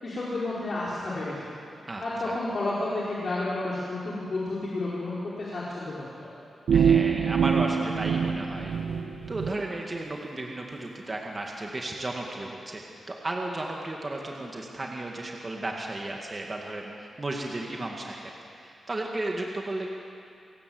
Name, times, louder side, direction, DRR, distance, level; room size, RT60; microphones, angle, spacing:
voice 1, 0.0-1.5 2.0-6.1, left 2 dB, 40° left, -7 dB, 4.3 m, -31 dB
voice 2, 1.9-2.4 6.7-8.7 9.3-12.8 13.1-18.3 18.6-19.9, right 2 dB, 25° right, 0 dB, 2.0 m, -34 dB
sound 1, 6.7-9.5, right 7 dB, 80° right, 1.0 m, -24 dB
28.0 x 17.5 x 7.9 m, 2.5 s
wide cardioid pair, 150°, 0 cm